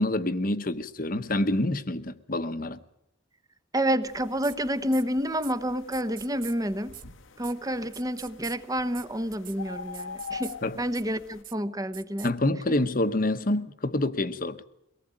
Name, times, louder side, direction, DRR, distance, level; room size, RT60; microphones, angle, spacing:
voice 1, 0.0-2.8 10.6-10.8 12.2-14.6, left 1 dB, 45° left, 1.1 m, -27 dB
voice 2, 3.7-6.9 7.4-12.3 12.7-12.8, equal, 20° right, 1.0 m, -29 dB
sound 1, 4.0-11.4, left 5 dB, 80° left, 1.5 m, -44 dB
sound 2, 4.4-4.6 4.9-5.0 5.4-5.5 5.9-6.5 6.9-7.0 7.4-7.5 7.9-8.6 8.9-9.0 9.3-9.6 9.9-10.6 10.9-11.0 11.4-11.5 11.9-12.3, right 13 dB, 45° right, 1.0 m, -43 dB
23.5 x 18.5 x 8.9 m
head